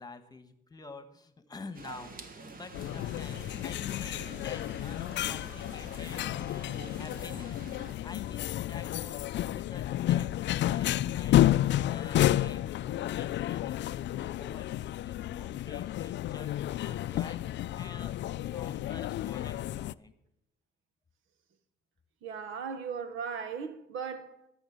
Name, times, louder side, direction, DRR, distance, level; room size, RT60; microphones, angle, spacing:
voice 1, 0.0-7.7 8.0-9.2 9.5-11.5 11.7-20.1, left 3 dB, 20° left, 1.4 m, -49 dB
sound 1, 1.7-7.9, right 3 dB, 45° right, 1.6 m, -48 dB
sound 2, 2.7-19.9, left 13 dB, 65° left, 0.4 m, -31 dB
voice 2, 22.2-24.5, right 6 dB, 90° right, 1.2 m, -37 dB
13.0 x 6.5 x 8.5 m
cardioid pair, 90°, 20 cm